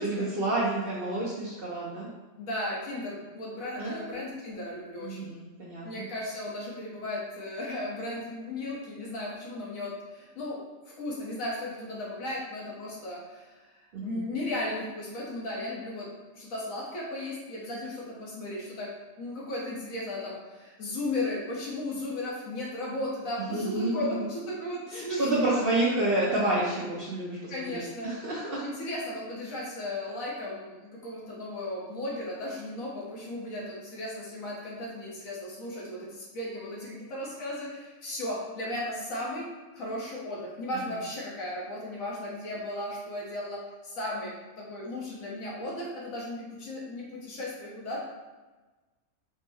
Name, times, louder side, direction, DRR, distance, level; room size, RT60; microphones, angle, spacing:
voice 1, 0.0-2.1 3.8-4.2 5.0-6.1 13.9-14.2 23.4-24.2 24.9-28.6, right 2 dB, 55° right, -6 dB, 0.7 m, -29 dB
voice 2, 2.4-5.3 5.8-13.7 14.0-16.1 16.3-18.9 19.2-25.9 27.5-28.2 28.6-39.5 39.7-48.0, left 1 dB, 70° left, -4 dB, 1.4 m, -36 dB
4.3 x 2.1 x 3.4 m, 1.2 s
omnidirectional pair, 1.5 m